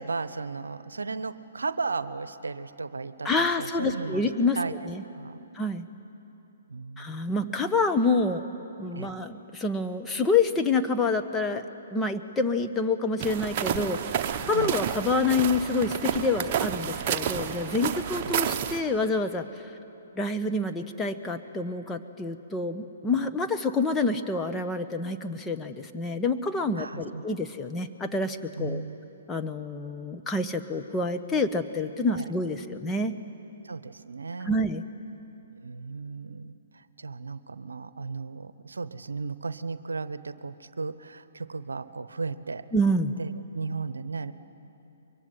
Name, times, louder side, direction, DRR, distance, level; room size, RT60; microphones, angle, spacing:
voice 1, 0.0-4.2 4.6-4.7 5.1-5.5 6.7-7.3 8.9-9.2 14.5-14.8 18.1-18.4 26.8-27.4 28.6-29.0 32.1-32.3 33.6-34.6 35.6-42.7 43.2-44.3, right 4 dB, 80° right, 15 dB, 0.9 m, -35 dB
voice 2, 3.2-4.6 4.9-5.0 5.5-5.9 7.0-8.4 8.8-11.7 11.9-19.7 20.2-28.8 29.3-33.1 34.4-34.8 42.7-43.2, left 3 dB, 10° left, 6 dB, 1.1 m, -27 dB
sound 1, 13.2-18.8, right 8 dB, 35° right, 1.2 m, -30 dB
24.0 x 22.5 x 9.8 m, 2.9 s
figure-of-eight pair, 130°, 0 cm